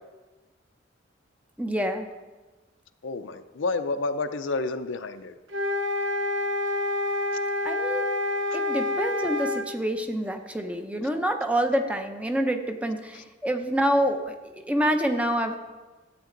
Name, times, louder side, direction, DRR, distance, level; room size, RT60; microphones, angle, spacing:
voice 1, 1.6-2.1 7.6-8.1 8.5-14.4 14.7-15.6, equal, 5° right, 6 dB, 0.7 m, -27 dB
voice 2, 3.0-5.3, left 3 dB, 70° left, 10 dB, 0.6 m, -29 dB
sound 1, 5.5-9.7, left 2 dB, 70° right, 0.9 m, -27 dB
13.0 x 8.3 x 3.9 m, 1.2 s
head